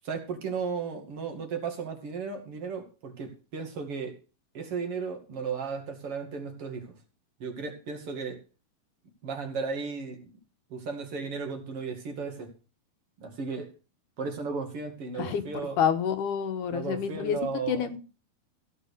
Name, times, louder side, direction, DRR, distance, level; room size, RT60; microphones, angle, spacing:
voice 1, 0.0-4.1 4.5-6.9 7.4-8.4 9.2-10.3 10.7-12.5 13.2-13.7 14.2-15.8 16.7-17.9, right 5 dB, 40° right, 4 dB, 2.9 m, -35 dB
voice 2, 15.8-17.4 17.7-18.0, left 8 dB, 65° left, 7 dB, 2.6 m, -28 dB
16.5 x 6.3 x 6.7 m, 0.34 s
omnidirectional pair, 4.2 m